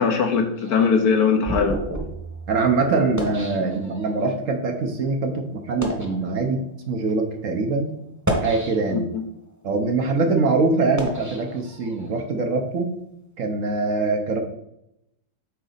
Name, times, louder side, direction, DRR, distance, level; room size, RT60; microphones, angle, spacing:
voice 1, 0.0-1.8 8.9-9.2, left 5 dB, 65° left, 5 dB, 1.3 m, -20 dB
sound 1, 0.6-4.3 5.0-5.1 5.6-6.2 7.0-7.1 8.1-9.2 9.7-12.2, right 1 dB, 10° right, 1.1 m, -31 dB
voice 2, 2.5-6.6 6.9-8.0 8.4-9.0 9.6-12.9 13.4-14.4, right 3 dB, 55° right, 4 dB, 1.1 m, -23 dB
9.2 x 4.0 x 4.0 m, 0.79 s
omnidirectional pair, 1.8 m